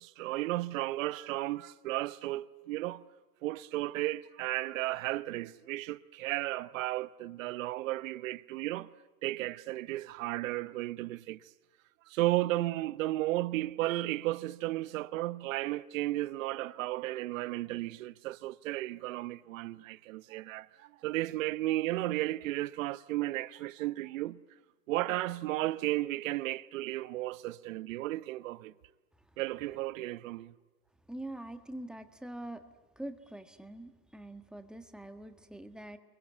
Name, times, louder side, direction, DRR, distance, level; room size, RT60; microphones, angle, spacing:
voice 1, 0.0-3.0 3.4-8.9 9.2-11.4 12.1-24.4 24.9-28.7 29.4-30.5, right 17 dB, 55° right, 1.0 m, -34 dB
voice 2, 31.1-32.7 32.9-36.0, right 1 dB, ahead, 1.5 m, -44 dB
29.0 x 23.0 x 8.5 m
hypercardioid pair, 135°, 46 cm